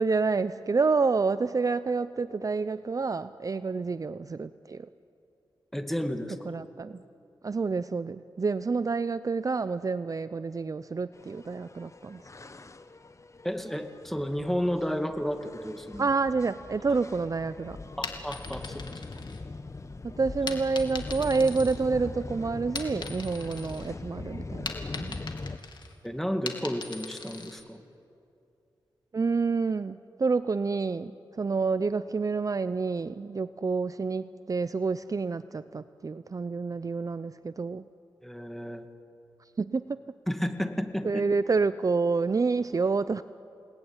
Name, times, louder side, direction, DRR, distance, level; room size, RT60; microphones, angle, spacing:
voice 1, 0.0-4.9 6.5-7.0 7.4-12.2 16.0-17.8 20.0-25.2 29.1-37.8 39.6-40.0 41.0-43.2, right 4 dB, 40° right, 14 dB, 0.6 m, -28 dB
voice 2, 5.7-6.4 13.4-16.0 18.0-18.8 26.0-27.8 38.2-38.9 40.3-41.1, equal, 5° left, 6 dB, 2.3 m, -32 dB
sound 1, 11.1-25.6, left 3 dB, 35° left, 1.2 m, -41 dB
sound 2, 17.9-19.8 20.5-22.2 22.6-23.9 24.2-27.6, left 4 dB, 55° left, 2.9 m, -40 dB
29.5 x 19.5 x 9.7 m, 2.6 s
cardioid pair, 70°, 9 cm